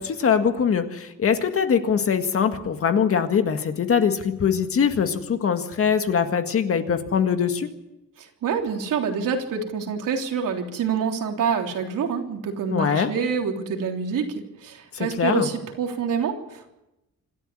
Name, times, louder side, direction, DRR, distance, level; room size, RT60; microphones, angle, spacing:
voice 1, 0.0-7.7 12.7-13.1 14.9-15.5, left 7 dB, 45° left, 7 dB, 1.8 m, -22 dB
voice 2, 8.2-16.7, right 6 dB, 80° right, 2 dB, 3.5 m, -27 dB
27.0 x 13.0 x 9.9 m, 0.93 s
wide cardioid pair, 180°, 32 cm